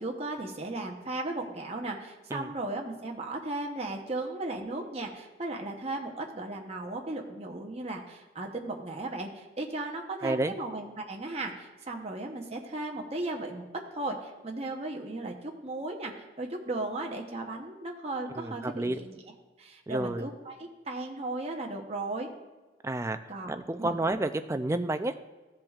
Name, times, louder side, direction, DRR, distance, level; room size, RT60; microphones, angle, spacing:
voice 1, 0.0-19.2 19.6-22.3 23.3-24.0, right 2 dB, 30° right, 1 dB, 0.9 m, -36 dB
voice 2, 10.2-10.5 18.3-19.0 19.9-20.3 22.8-23.2 23.5-25.1, right 2 dB, 15° right, 9 dB, 0.3 m, -30 dB
15.0 x 7.5 x 2.4 m, 1.2 s
head